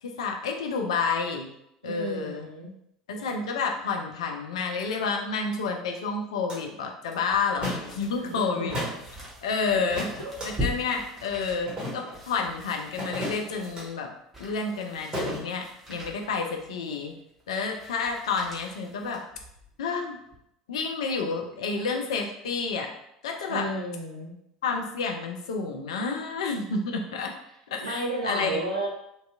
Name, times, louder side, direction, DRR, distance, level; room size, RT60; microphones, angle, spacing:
voice 1, 0.0-1.5 1.8-2.5 3.1-8.8 9.4-10.1 10.4-14.1 14.4-17.1 17.5-19.2 19.8-20.2 20.7-22.9 23.2-23.7 24.6-27.3 27.7-28.6, left 4 dB, 70° left, 3 dB, 0.4 m, -30 dB
voice 2, 1.8-2.7 8.2-8.7 9.7-9.8 10.2-10.4 23.5-24.3 27.8-28.9, right 2 dB, 85° right, -1 dB, 0.4 m, -32 dB
sound 1, 6.5-6.6 7.6-7.9 8.7-9.0 9.9-10.5 11.7-12.2 13.0-13.8 15.1-15.4, equal, 30° right, 1.0 m, -33 dB
sound 2, 7.1-19.8 20.2-20.4, left 1 dB, 5° right, 1.0 m, -42 dB
2.6 x 2.2 x 2.4 m, 0.77 s
figure-of-eight pair, 70°, 3 cm